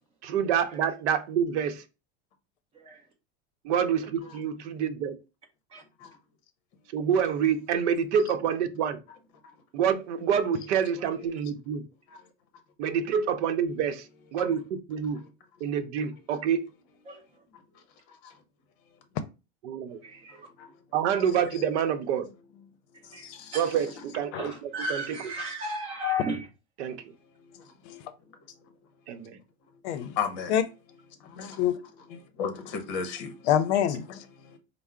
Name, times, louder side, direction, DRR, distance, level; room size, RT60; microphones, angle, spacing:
voice 1, 0.2-1.8 3.6-5.1 6.9-9.0 9.7-11.8 12.8-14.1 14.3-15.2 15.6-16.6 19.6-20.0 20.9-22.3 23.5-24.5 24.9-25.3 26.8-27.1 29.1-29.4, right 8 dB, 85° right, 0.7 m, -27 dB
voice 2, 20.0-20.5 22.9-23.7 24.3-26.5, right 3 dB, 15° right, 0.6 m, -37 dB
voice 3, 23.0-23.6 27.5-27.7 30.2-30.5 31.2-31.6 32.4-33.4 34.1-34.6, left 6 dB, 45° left, 0.8 m, -35 dB
voice 4, 29.8-30.1 30.5-30.6 31.6-31.8 33.5-34.2, left 10 dB, 75° left, 0.6 m, -25 dB
4.4 x 2.0 x 3.6 m
supercardioid pair, 180°, 34 cm